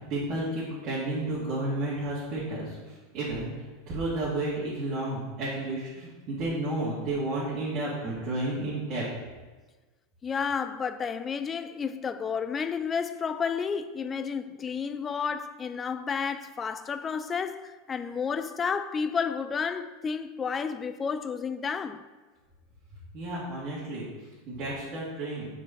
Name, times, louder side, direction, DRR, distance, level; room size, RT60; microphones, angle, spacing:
voice 1, 0.1-3.5 3.9-9.0 23.1-24.0 24.5-25.5, right 2 dB, 40° right, 2.1 m, -32 dB
voice 2, 10.2-22.0, left 6 dB, 20° left, 0.3 m, -31 dB
4.8 x 4.7 x 5.6 m
supercardioid pair, 130°, 0 cm